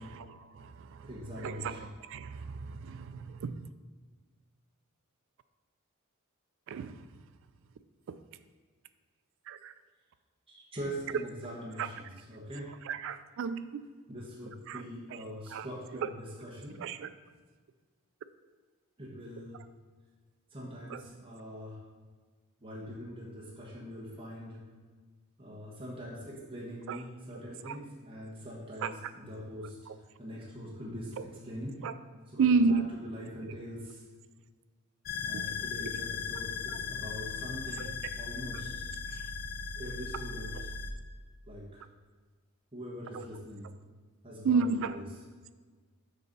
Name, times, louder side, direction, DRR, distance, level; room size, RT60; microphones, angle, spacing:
voice 1, 0.0-1.1 1.4-3.7 6.7-7.0 9.5-9.7 11.8-11.9 12.8-13.9 14.7-14.8 15.1-15.2 15.5-15.7 16.0-16.1 16.8-17.1 20.9-21.0 26.9-27.0 27.6-27.8 28.8-28.9 29.9-30.0 31.2-31.3 31.8-31.9 32.4-32.9 33.4-33.5 35.3-35.9 36.7-36.8 37.8-37.9 39.1-39.2 40.6-40.7 43.1-43.2 44.4-45.0, right 4 dB, 60° right, 0.3 m, -32 dB
voice 2, 1.0-1.9 10.5-12.7 14.1-16.8 19.0-19.6 20.5-21.8 22.6-24.6 25.4-29.8 30.2-31.8 32.3-34.0 35.2-37.9 38.2-38.9 39.8-40.7 41.5-41.8 42.7-43.7 44.2-44.7, equal, 25° right, 1.2 m, -43 dB
sound 1, 35.1-40.9, left 6 dB, 40° left, 0.5 m, -37 dB
6.6 x 4.0 x 5.3 m
head